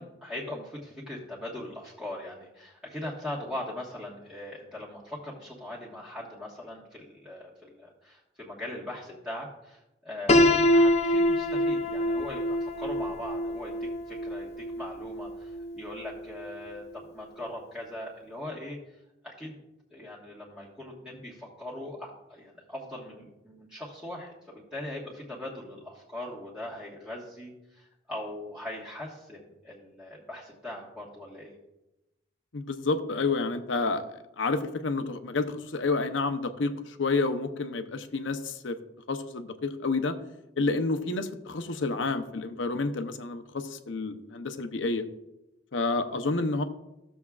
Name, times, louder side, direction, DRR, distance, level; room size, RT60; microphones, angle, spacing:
voice 1, 0.0-19.6 19.9-31.5 45.7-46.1, left 1 dB, 5° right, -7 dB, 1.4 m, -40 dB
Piano, 10.3-16.2, left 1 dB, 35° left, 0.5 m, -25 dB
voice 2, 32.5-34.0 34.4-38.8 39.1-40.2 40.6-45.0 45.7-46.6, left 3 dB, 85° left, 8 dB, 0.7 m, -29 dB
15.0 x 7.1 x 2.4 m, 0.95 s
head